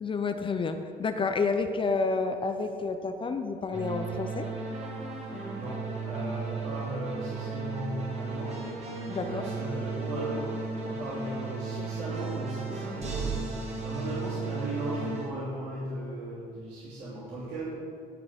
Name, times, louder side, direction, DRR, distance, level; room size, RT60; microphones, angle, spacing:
voice 1, 0.0-4.5 9.1-9.5, left 4 dB, 30° left, 7 dB, 0.7 m, -30 dB
sound 1, 3.7-15.3, right 4 dB, 40° right, 2.2 m, -35 dB
voice 2, 5.2-8.7 9.2-17.7, right 1 dB, 85° right, -9 dB, 2.9 m, -37 dB
15.5 x 6.0 x 5.2 m, 2.4 s
cardioid pair, 110°, 17 cm